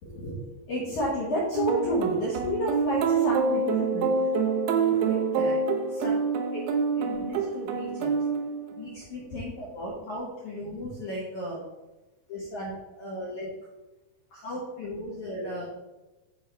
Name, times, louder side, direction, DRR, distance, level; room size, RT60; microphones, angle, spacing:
voice 1, 0.0-4.1 4.7-5.6 5.9-6.1 6.5-6.6 7.0-8.2 8.7-11.6 12.3-13.5 14.3-15.6, equal, 75° left, -6 dB, 1.7 m, -33 dB
sound 1, 1.5-9.0, right 5 dB, 80° right, 2.4 m, -26 dB
10.5 x 4.4 x 3.4 m, 1.1 s
omnidirectional pair, 5.4 m